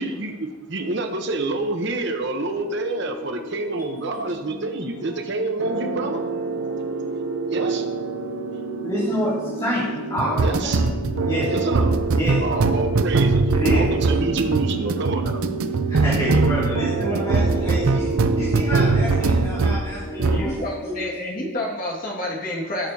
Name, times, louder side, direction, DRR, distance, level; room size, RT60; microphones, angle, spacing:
voice 1, 0.0-6.2 7.5-7.9 10.4-10.8 11.5-11.9 12.4-13.4 13.7-15.4, right 2 dB, 55° right, 5 dB, 0.9 m, -27 dB
sound 1, 2.2-20.9, left 1 dB, 70° left, 1.2 m, -39 dB
sound 2, 5.6-19.9 20.2-20.5, right 3 dB, 90° right, 0.6 m, -22 dB
voice 2, 8.8-12.6 13.5-14.2 15.9-20.6 20.8-21.0, equal, 20° left, -9 dB, 2.5 m, -28 dB
voice 3, 20.3-22.9, left 1 dB, 40° left, -2 dB, 1.9 m, -29 dB
17.5 x 6.7 x 2.8 m, 1.3 s
head